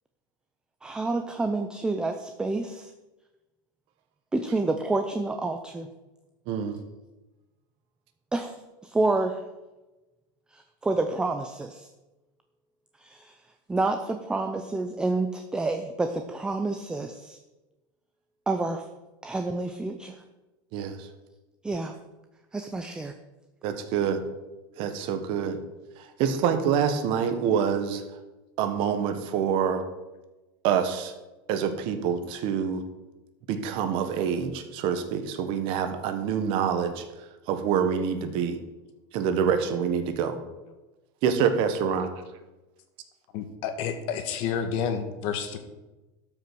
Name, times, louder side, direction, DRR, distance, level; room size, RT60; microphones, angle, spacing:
voice 1, 0.8-2.9 4.3-5.9 8.3-8.5 8.8-9.4 10.5-11.9 13.0-13.3 13.7-17.4 18.5-18.8 19.2-20.2 21.6-22.0 22.5-23.1, right 2 dB, 5° right, 7 dB, 0.5 m, -28 dB
voice 2, 6.5-6.8 20.7-21.1 23.6-24.2 24.8-25.6 26.0-28.0 28.6-29.8 30.6-31.1 31.5-32.8 33.5-37.0 37.5-38.6 39.1-40.4 41.2-42.1, right 7 dB, 50° right, 9 dB, 1.3 m, -26 dB
voice 3, 43.3-45.6, left 7 dB, 50° left, 8 dB, 1.5 m, -30 dB
12.5 x 5.8 x 6.1 m, 1.1 s
supercardioid pair, 155°, 12 cm